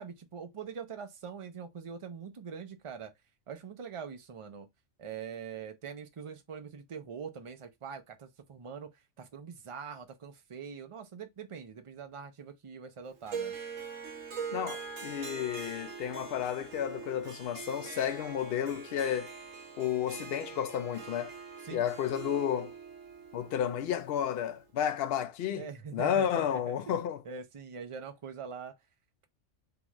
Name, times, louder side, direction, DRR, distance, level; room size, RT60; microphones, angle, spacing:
voice 1, 0.0-3.1 3.5-4.7 5.0-8.9 9.2-13.5 21.6-21.8 25.5-26.6 26.9-27.0 27.2-28.7, right 6 dB, 45° right, 0.4 m, -43 dB
Harp, 13.3-24.6, right 6 dB, 85° right, 1.1 m, -43 dB
voice 2, 14.5-19.3 19.8-21.3 21.7-22.7 23.3-25.7 25.9-27.2, left 9 dB, 60° left, 0.7 m, -32 dB
3.8 x 2.4 x 3.0 m
omnidirectional pair, 1.3 m